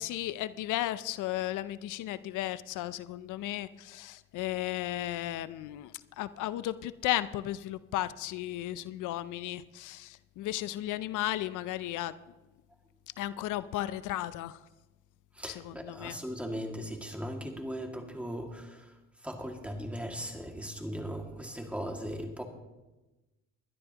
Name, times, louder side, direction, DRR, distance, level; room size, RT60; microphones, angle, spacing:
voice 1, 0.0-12.1 13.2-14.6 15.6-16.2, left 14 dB, 85° left, 15 dB, 0.5 m, -34 dB
voice 2, 15.3-22.4, equal, 5° right, 3 dB, 2.0 m, -38 dB
20.5 x 12.0 x 2.9 m, 1.1 s
cardioid pair, 90°, 30 cm